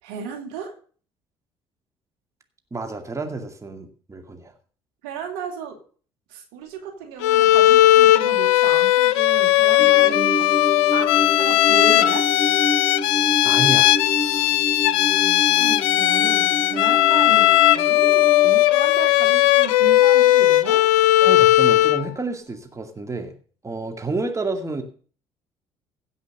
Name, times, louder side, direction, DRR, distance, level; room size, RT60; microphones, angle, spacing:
voice 1, 0.0-0.7 5.0-5.8 6.3-10.5 10.9-12.3 15.5-20.8, right 6 dB, 80° right, 2 dB, 2.4 m, -34 dB
voice 2, 2.7-4.5 13.4-13.9 21.2-23.3 23.6-24.8, right 3 dB, 20° right, 5 dB, 2.3 m, -29 dB
Bowed string instrument, 7.2-22.1, left 15 dB, 80° left, 0.5 m, -17 dB
sound 1, 9.8-18.5, left 1 dB, 40° left, 2.7 m, -28 dB
16.0 x 5.6 x 6.7 m, 0.43 s
hypercardioid pair, 60°, 14 cm